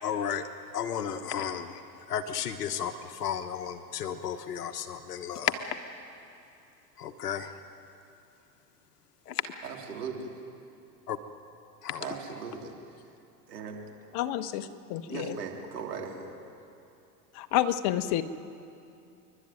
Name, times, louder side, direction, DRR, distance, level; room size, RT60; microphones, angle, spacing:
voice 1, 0.0-0.5 0.7-5.6 7.0-7.5 9.3-9.5 11.1-11.2 11.8-12.1, left 8 dB, 80° left, 8 dB, 1.2 m, -33 dB
voice 2, 9.6-10.3 12.0-13.0 13.5-13.8 15.0-16.4, right 5 dB, 85° right, 1 dB, 3.4 m, -38 dB
voice 3, 14.1-15.3 17.3-18.2, left 12 dB, 55° left, 11 dB, 1.3 m, -29 dB
29.5 x 12.0 x 9.2 m, 2.7 s
hypercardioid pair, 90°, 46 cm